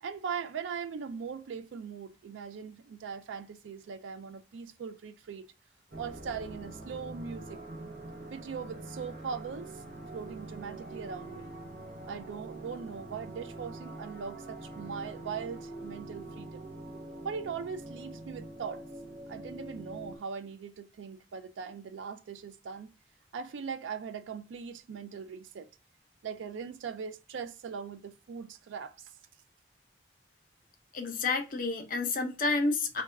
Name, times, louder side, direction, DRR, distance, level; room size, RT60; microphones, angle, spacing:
voice 1, 0.0-5.5 6.0-7.6 8.3-9.8 10.1-11.6 12.1-16.7 17.2-18.8 19.3-22.9 23.3-25.7 26.2-29.1, right 6 dB, 80° right, 0.3 m, -40 dB
sound 1, 5.9-20.2, right 2 dB, 50° right, 0.7 m, -44 dB
voice 2, 30.9-33.0, left 3 dB, 45° left, 0.5 m, -30 dB
2.3 x 2.2 x 3.2 m
head